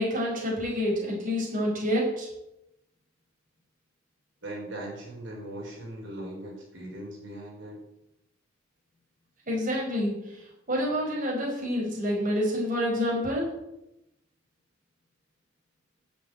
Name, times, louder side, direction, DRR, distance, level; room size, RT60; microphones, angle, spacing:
voice 1, 0.0-2.3 9.5-10.4 10.7-13.5, equal, 45° right, -2 dB, 5.2 m, -28 dB
voice 2, 4.4-7.8, right 1 dB, 75° right, -2 dB, 5.1 m, -39 dB
12.5 x 7.0 x 9.4 m, 0.86 s
head